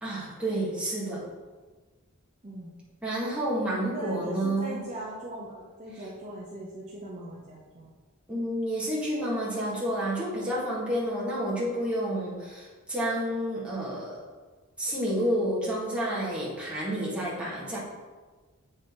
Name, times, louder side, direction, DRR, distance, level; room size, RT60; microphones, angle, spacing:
voice 1, 0.0-1.2 3.0-4.8 8.3-14.2 14.8-17.8, right 1 dB, 5° right, -8 dB, 1.7 m, -30 dB
voice 2, 2.4-2.8 3.9-7.9, right 1 dB, 30° right, -5 dB, 0.8 m, -40 dB
7.5 x 4.0 x 4.0 m, 1.4 s
head